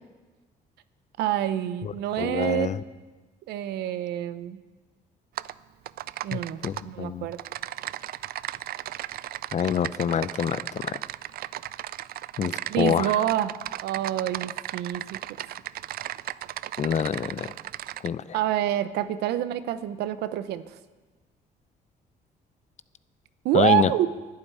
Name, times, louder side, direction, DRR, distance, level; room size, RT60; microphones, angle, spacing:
voice 1, 1.2-2.7 3.5-4.6 6.2-6.6 6.8-7.4 12.7-13.6 13.8-15.2 18.3-20.7 23.4-24.1, right 12 dB, 90° right, 13 dB, 0.8 m, -27 dB
voice 2, 1.8-2.8 6.3-7.3 9.5-11.0 12.4-13.2 16.8-17.5 18.0-18.4 23.5-23.9, left 8 dB, 45° left, 17 dB, 0.6 m, -27 dB
Typing, 5.4-5.5 5.9-6.8 7.3-18.1, right 13 dB, 65° right, 0.4 m, -36 dB
11.5 x 8.7 x 9.9 m, 1.3 s
cardioid pair, 85°, 16 cm